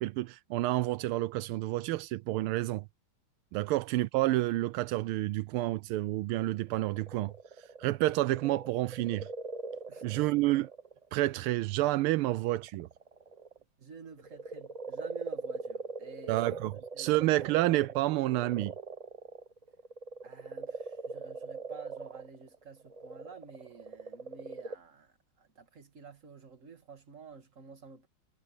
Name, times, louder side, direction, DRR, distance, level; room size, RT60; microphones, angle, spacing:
voice 1, 0.0-2.9 3.5-7.3 7.8-9.3 10.0-10.7 11.1-12.9 16.3-18.7, right 17 dB, 85° right, 1.5 m, -29 dB
sound 1, 6.4-11.4 11.9-13.6 14.0-24.7, right 4 dB, 55° right, 0.4 m, -42 dB
voice 2, 13.8-16.4 16.9-17.2 20.2-28.1, right 5 dB, 35° right, 2.5 m, -51 dB
omnidirectional pair, 2.3 m